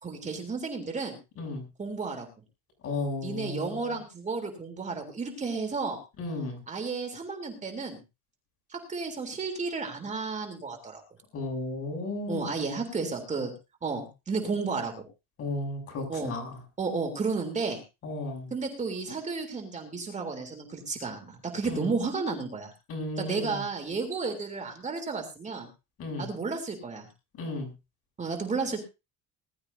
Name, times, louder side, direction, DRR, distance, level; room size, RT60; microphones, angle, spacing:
voice 1, 0.0-1.2 1.8-2.3 3.2-6.0 6.7-8.0 8.7-11.0 12.3-13.5 13.8-15.0 16.1-16.3 16.8-17.8 18.5-22.7 23.2-25.7 26.2-27.1 28.2-28.8, right 4 dB, 20° right, 3 dB, 3.4 m, -32 dB
voice 2, 2.8-3.7 6.2-6.6 11.3-12.6 15.4-16.5 18.0-18.5 21.6-21.9 22.9-23.6 26.0-26.3 27.4-27.7, left 2 dB, 45° left, 3 dB, 7.7 m, -34 dB
20.5 x 13.0 x 2.7 m, 0.28 s
cardioid pair, 150°, 33 cm